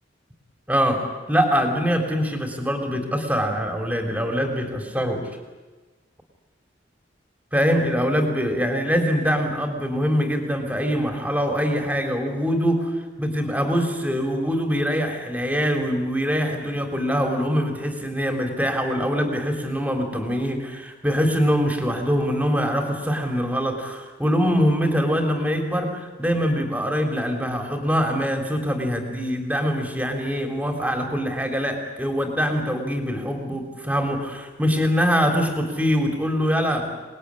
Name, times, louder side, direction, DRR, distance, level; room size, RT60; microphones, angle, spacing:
voice 1, 0.7-5.3 7.5-36.9, equal, 10° right, 4 dB, 3.6 m, -23 dB
27.0 x 20.5 x 9.9 m, 1.3 s
head